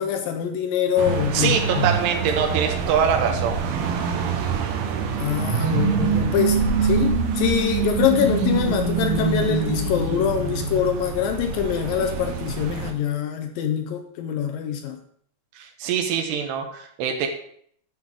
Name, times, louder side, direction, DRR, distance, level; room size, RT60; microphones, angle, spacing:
voice 1, 0.0-1.9 5.2-15.0, left 9 dB, 80° left, 4 dB, 2.1 m, -24 dB
sound 1, 1.0-12.9, right 5 dB, 75° right, 2.6 m, -28 dB
voice 2, 1.3-3.6 15.6-17.3, right 7 dB, 90° right, 3 dB, 3.0 m, -23 dB
sound 2, 5.3-11.8, right 5 dB, 45° right, 3.7 m, -24 dB
10.0 x 6.5 x 3.6 m, 0.63 s
omnidirectional pair, 4.7 m